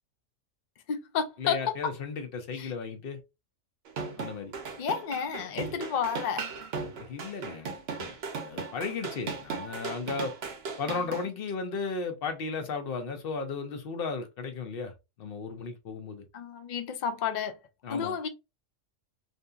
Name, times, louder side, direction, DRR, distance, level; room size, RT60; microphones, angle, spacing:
voice 1, 0.9-1.7 2.6-2.7 4.8-6.4 16.3-17.6 17.9-18.3, left 7 dB, 75° left, 0.4 m, -31 dB
voice 2, 1.4-3.2 4.2-4.5 7.0-8.2 8.4-10.3 10.8-16.2 17.8-18.2, left 4 dB, 55° left, 0.8 m, -35 dB
sound 1, 3.9-11.2, right 5 dB, 60° right, 0.8 m, -37 dB
2.7 x 2.5 x 2.3 m
omnidirectional pair, 1.3 m